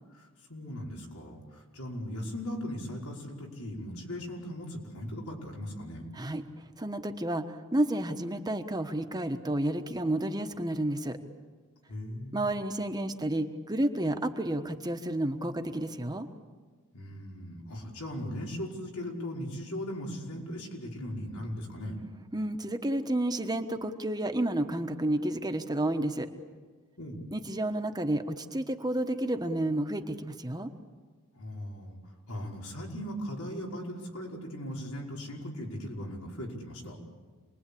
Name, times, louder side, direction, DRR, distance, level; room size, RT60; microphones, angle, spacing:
voice 1, 0.1-6.1 11.9-12.5 16.9-22.0 27.0-27.2 31.3-37.0, equal, 90° left, -1 dB, 5.4 m, -38 dB
voice 2, 6.8-11.2 12.3-16.3 22.3-26.3 27.3-30.7, right 1 dB, 20° right, 6 dB, 1.2 m, -31 dB
28.0 x 21.0 x 8.6 m, 1.4 s
head